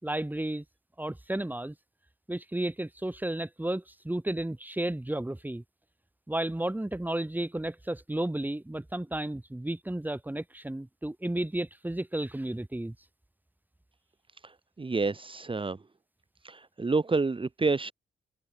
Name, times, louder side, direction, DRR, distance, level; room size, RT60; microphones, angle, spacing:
voice 1, 0.0-0.6 1.0-1.7 2.3-5.6 6.3-12.9, right 1 dB, 10° right, 5.4 m, -33 dB
voice 2, 14.8-15.8 16.4-17.9, right 3 dB, 25° right, 3.8 m, -28 dB
open air
cardioid pair, 105°, 19 cm